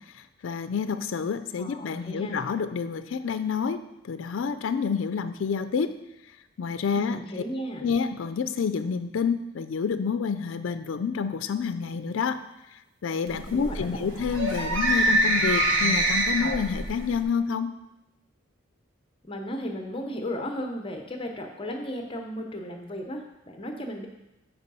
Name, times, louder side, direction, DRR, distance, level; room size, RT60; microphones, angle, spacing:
voice 1, 0.4-3.8 4.1-5.9 6.6-7.4 7.8-12.4 13.0-17.7, left 6 dB, 65° left, 10 dB, 0.4 m, -28 dB
voice 2, 1.6-2.5 6.9-7.9 13.3-14.0 19.3-24.1, equal, 25° left, 3 dB, 0.7 m, -35 dB
sound 1, 13.3-17.2, right 1 dB, 65° right, 1.1 m, -25 dB
7.9 x 4.7 x 5.4 m, 0.92 s
head